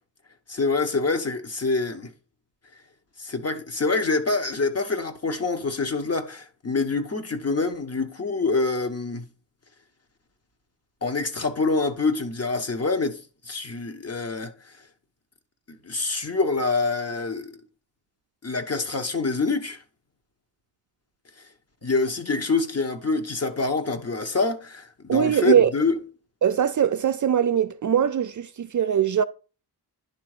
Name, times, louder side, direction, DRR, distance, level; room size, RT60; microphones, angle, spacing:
voice 1, 0.5-2.1 3.2-9.3 11.0-13.2 13.5-14.5 15.8-17.6 18.4-19.8 21.8-25.9, left 3 dB, 35° left, 1.3 m, -26 dB
voice 2, 25.1-25.7 26.4-29.2, right 9 dB, 45° right, 0.4 m, -21 dB
10.5 x 3.5 x 4.9 m
wide cardioid pair, 90°, 42 cm